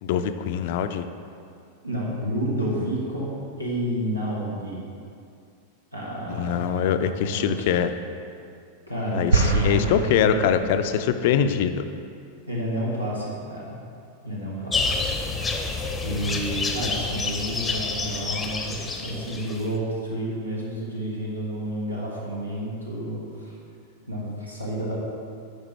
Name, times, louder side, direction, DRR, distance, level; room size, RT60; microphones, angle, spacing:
voice 1, 0.0-1.0 6.3-7.9 9.1-11.8, left 8 dB, 50° left, 10 dB, 0.4 m, -23 dB
voice 2, 1.8-3.3 3.6-4.8 5.9-6.9 7.2-7.7 8.9-9.8 10.2-10.5 12.5-13.8 14.2-15.1 16.0-23.6 24.1-25.0, right 1 dB, 90° right, -5 dB, 1.5 m, -30 dB
sound 1, 9.3-10.9, right 3 dB, 70° right, 0.6 m, -24 dB
sound 2, 14.7-19.7, left 3 dB, 15° left, 0.6 m, -28 dB
9.5 x 5.0 x 3.2 m, 2.4 s
figure-of-eight pair, 90°, 0 cm